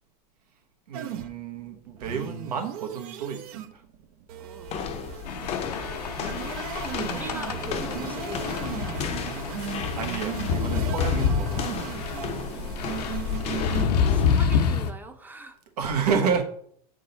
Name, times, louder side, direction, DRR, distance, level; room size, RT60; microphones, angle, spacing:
sound 1, 0.9-13.8, right 10 dB, 65° right, 0.8 m, -37 dB
voice 1, 0.9-3.8 9.7-11.8 15.8-16.4, right 6 dB, 80° right, 4 dB, 1.2 m, -30 dB
voice 2, 4.4-4.8 5.3-5.7 7.0-8.7 12.3-13.0 14.1-15.6, right 2 dB, 10° right, 8 dB, 0.7 m, -42 dB
sound 2, 4.6-14.5, left 6 dB, 35° left, 0.6 m, -34 dB
sound 3, 5.3-14.9, left 6 dB, 85° left, 1.0 m, -28 dB
7.8 x 3.9 x 3.9 m, 0.64 s
hypercardioid pair, 120°, 20 cm